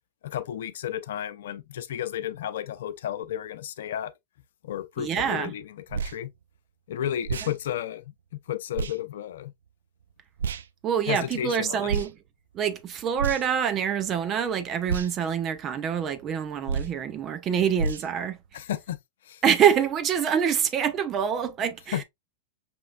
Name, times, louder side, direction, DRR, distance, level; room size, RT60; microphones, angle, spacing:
voice 1, 0.2-4.1 4.6-6.3 6.9-8.1 8.5-9.5 11.1-12.0 18.5-19.0 19.2-19.4 21.9-22.0, left 10 dB, 75° left, 0.5 m, -33 dB
voice 2, 5.0-5.5 10.8-12.1 12.5-18.4 19.4-22.0, right 8 dB, 35° right, 0.7 m, -26 dB
sound 1, 5.9-6.2 7.2-7.5 8.7-9.0 10.4-10.7 11.9-12.1 13.2-13.6 14.9-15.1 16.7-17.0 17.8-18.1, right 5 dB, 85° right, 0.3 m, -29 dB
5.3 x 3.1 x 2.2 m
hypercardioid pair, 110°, 0 cm